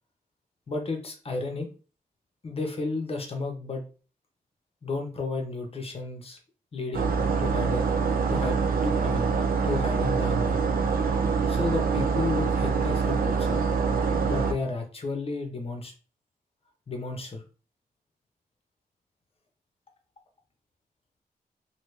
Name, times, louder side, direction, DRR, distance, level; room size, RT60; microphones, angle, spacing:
voice 1, 0.7-1.7 2.4-3.8 4.8-6.4 6.7-7.9 8.3-8.6 8.8-9.4 9.6-10.6 11.5-13.6 14.3-15.9 16.9-17.4, left 3 dB, 40° left, 4 dB, 0.8 m, -32 dB
sound 1, 6.9-14.5, right 5 dB, 65° right, 0.6 m, -25 dB
3.0 x 2.8 x 3.2 m, 0.36 s
wide cardioid pair, 135°, 16 cm